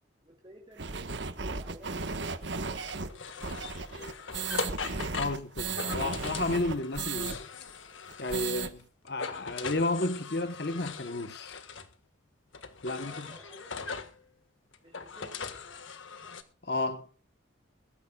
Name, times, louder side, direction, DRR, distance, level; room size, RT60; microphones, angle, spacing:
voice 1, 0.2-1.1 1.4-4.2 12.9-13.7 14.8-15.5, right 1 dB, 25° right, 2.4 m, -54 dB
sound 1, 0.8-7.4 7.7-7.8 8.1-8.7, right 4 dB, 65° right, 1.3 m, -35 dB
sound 2, 2.7-8.8 9.1-11.9 12.5-14.2 14.7-16.4, left 5 dB, 75° left, 1.7 m, -40 dB
voice 2, 5.1-7.4 8.2-11.6 12.8-13.3 16.6-17.1, left 2 dB, 55° left, 1.1 m, -32 dB
22.0 x 13.5 x 2.4 m
head